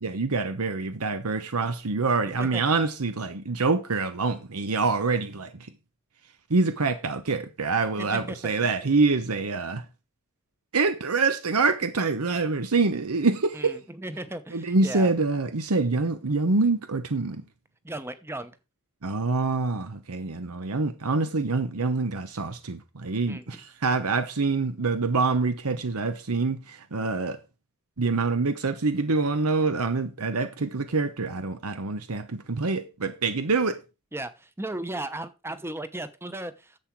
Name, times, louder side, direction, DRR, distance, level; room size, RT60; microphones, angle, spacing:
voice 1, 0.0-5.7 6.5-9.8 10.7-13.8 14.5-17.4 19.0-27.4 28.0-33.8, right 3 dB, 85° right, 0.9 m, -26 dB
voice 2, 8.0-8.4 13.5-15.1 17.8-18.6 23.3-23.6 34.1-36.8, right 1 dB, 10° right, 0.9 m, -36 dB
11.0 x 7.6 x 4.6 m
head